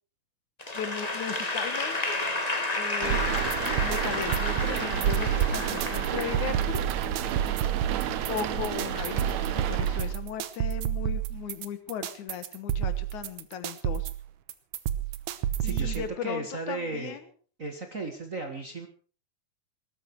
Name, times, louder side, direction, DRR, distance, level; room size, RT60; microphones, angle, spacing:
Applause / Crowd, 0.6-6.9, left 2 dB, 15° left, 1.5 m, -31 dB
voice 1, 0.7-2.2 2.8-3.5 3.8-6.8 8.3-14.1 15.6-17.2, left 8 dB, 80° left, 11 dB, 2.8 m, -37 dB
sound 1, 3.0-10.2, right 9 dB, 70° right, 2.3 m, -31 dB
sound 2, 3.1-16.1, right 10 dB, 90° right, 2.5 m, -30 dB
voice 2, 15.4-17.2 17.6-18.9, right 3 dB, 35° right, 4 dB, 1.4 m, -35 dB
19.5 x 13.5 x 4.7 m, 0.41 s
omnidirectional pair, 3.5 m